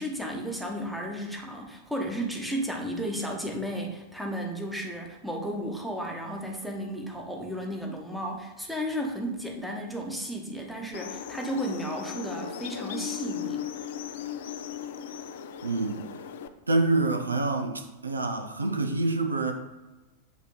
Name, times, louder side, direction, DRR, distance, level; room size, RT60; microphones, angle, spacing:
voice 1, 0.0-13.7, equal, ahead, 0 dB, 1.0 m, -33 dB
sound 1, 10.9-16.5, left 9 dB, 55° left, 0.4 m, -37 dB
voice 2, 15.6-16.1 16.7-19.5, right 2 dB, 80° right, 5 dB, 0.6 m, -26 dB
8.0 x 3.0 x 3.9 m, 1.1 s
figure-of-eight pair, 90°, 0 cm